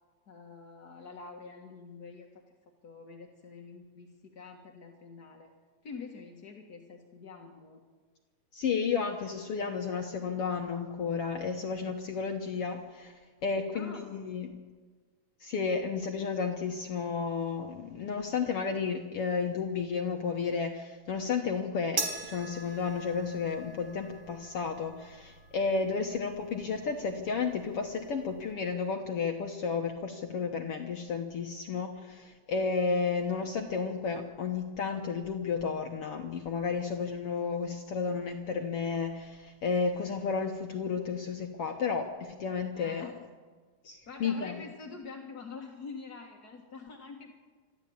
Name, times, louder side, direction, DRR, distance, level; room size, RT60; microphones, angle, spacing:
voice 1, 0.3-2.4 2.8-5.5 5.8-7.8 13.7-14.2 42.7-43.1 44.1-47.3, left 4 dB, 45° left, 1 dB, 1.4 m, -46 dB
voice 2, 8.5-13.1 13.4-14.6 15.4-43.1 43.8-44.6, left 5 dB, 60° left, 3 dB, 1.6 m, -32 dB
sound 1, 22.0-28.5, right 4 dB, 55° right, 3.3 m, -42 dB
22.5 x 14.0 x 8.7 m, 1.4 s
omnidirectional pair, 4.0 m